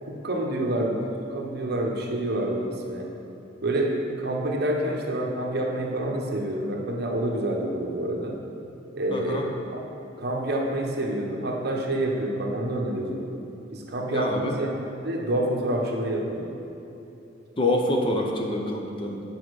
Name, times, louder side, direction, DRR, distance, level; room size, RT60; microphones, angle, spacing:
voice 1, 0.0-1.0 1.3-3.1 3.6-8.4 8.9-9.5 9.7-9.8 10.2-13.3 13.7-14.7 15.0-16.5, right 1 dB, 55° right, 0 dB, 1.0 m, -27 dB
voice 2, 9.1-9.5 14.1-14.6 17.6-19.2, left 1 dB, 25° left, 1 dB, 0.7 m, -26 dB
8.8 x 5.0 x 6.3 m, 2.9 s
head